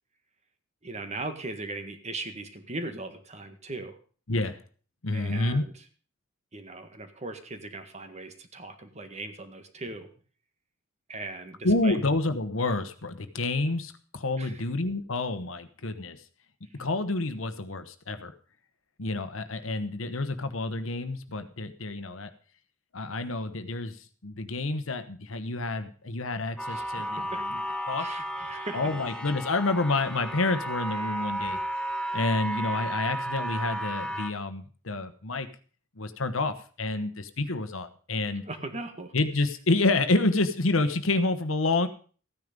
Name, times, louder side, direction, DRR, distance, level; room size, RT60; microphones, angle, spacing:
voice 1, 0.8-4.0 5.1-5.7 6.5-10.1 11.1-12.0 14.4-14.6 26.7-27.4 28.0-28.9 38.4-39.1, right 2 dB, 35° right, 8 dB, 1.7 m, -39 dB
voice 2, 4.3-4.6 5.0-5.7 11.6-16.2 16.7-18.3 19.0-22.3 22.9-27.6 27.9-28.2 28.7-31.6 32.1-35.5 36.0-38.4 39.1-41.9, left 2 dB, 80° left, 10 dB, 1.2 m, -28 dB
sound 1, 26.6-34.3, right 1 dB, 5° left, 1.0 m, -33 dB
14.5 x 9.7 x 5.3 m, 0.41 s
head